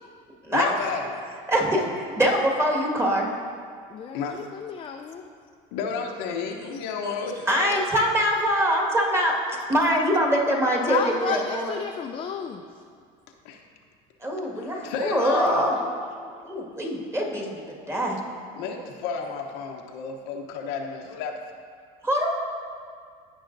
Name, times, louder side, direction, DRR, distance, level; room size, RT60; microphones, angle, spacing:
voice 1, 0.5-1.0 4.1-4.3 5.7-7.8 13.4-13.6 14.6-15.7 18.6-21.4, left 5 dB, 80° left, 2 dB, 0.9 m, -32 dB
voice 2, 1.5-3.3 7.5-9.3 9.7-11.7 14.2-15.8 16.4-17.6 17.9-18.2 22.0-22.3, equal, 15° right, -1 dB, 1.7 m, -23 dB
voice 3, 3.9-5.2 9.5-9.6 10.8-12.6 16.2-16.6, left 6 dB, 30° left, 4 dB, 0.4 m, -32 dB
14.5 x 5.6 x 2.6 m, 2.1 s
supercardioid pair, 100°, 18 cm